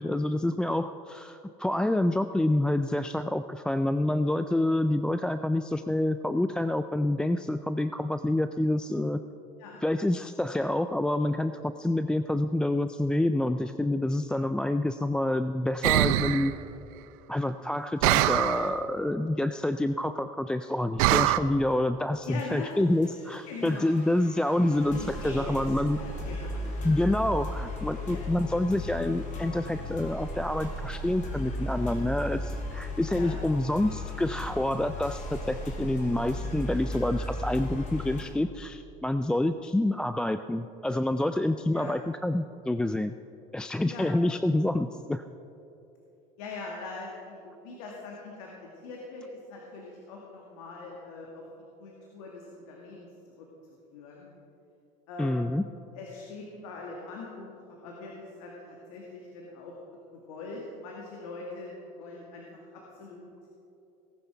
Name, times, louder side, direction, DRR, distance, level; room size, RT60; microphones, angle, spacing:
voice 1, 0.0-9.2 9.8-16.5 17.3-26.0 26.8-43.1 43.5-45.2 55.2-55.6, left 1 dB, 5° left, 10 dB, 0.3 m, -27 dB
sound 1, 15.8-16.5 18.0-18.7 21.0-21.4, right 15 dB, 85° right, 0.5 m, -23 dB
sound 2, 22.2-38.2, left 1 dB, 45° left, 3.0 m, -36 dB
voice 2, 22.3-22.7 23.5-23.9 24.8-26.8 28.1-28.3 33.1-33.4 41.7-42.0 43.9-44.1 46.4-51.4 51.8-53.1 53.4-53.5 53.9-54.3 55.1-55.6 55.9-59.7 60.1-62.5 62.7-63.3, left 3 dB, 90° left, -2 dB, 2.1 m, -42 dB
18.5 x 11.0 x 4.6 m, 2.8 s
supercardioid pair, 115°, 18 cm